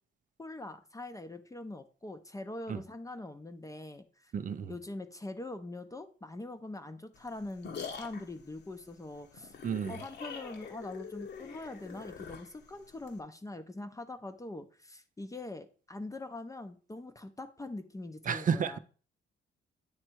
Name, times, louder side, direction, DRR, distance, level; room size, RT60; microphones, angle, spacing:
voice 1, 0.4-4.3 4.7-9.5 9.9-18.8, left 2 dB, 15° left, 0.6 m, -43 dB
voice 2, 4.3-4.7 9.6-9.9 18.3-18.7, right 7 dB, 40° right, 0.5 m, -31 dB
sound 1, 7.1-13.2, left 6 dB, 60° left, 1.1 m, -45 dB
8.9 x 3.3 x 4.5 m
cardioid pair, 90°, 20 cm